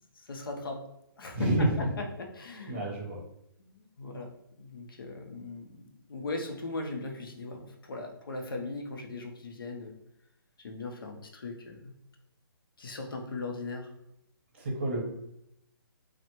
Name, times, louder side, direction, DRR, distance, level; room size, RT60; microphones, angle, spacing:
voice 1, 0.1-0.8 1.2-2.8 3.6-5.8 6.1-9.9 10.6-11.9 12.8-13.9, left 3 dB, 65° left, 2 dB, 0.7 m, -39 dB
voice 2, 1.3-1.8 2.7-3.2 14.6-15.0, right 1 dB, 30° right, -2 dB, 0.8 m, -28 dB
3.2 x 2.1 x 2.9 m, 0.81 s
hypercardioid pair, 175°, 12 cm